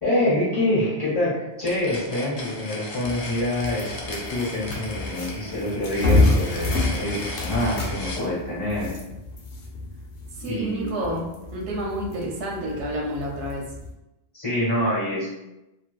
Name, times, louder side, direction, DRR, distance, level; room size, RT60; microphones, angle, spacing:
voice 1, 0.0-8.9 10.4-11.2 14.3-15.3, left 1 dB, 20° left, -10 dB, 0.8 m, -26 dB
sound 1, 1.6-8.2, left 2 dB, 50° left, 0.5 m, -36 dB
sound 2, 3.0-13.9, left 2 dB, 85° left, 1.0 m, -28 dB
voice 2, 10.4-13.6, right 1 dB, 90° right, -1 dB, 0.9 m, -29 dB
2.6 x 2.6 x 2.3 m, 0.96 s
omnidirectional pair, 1.1 m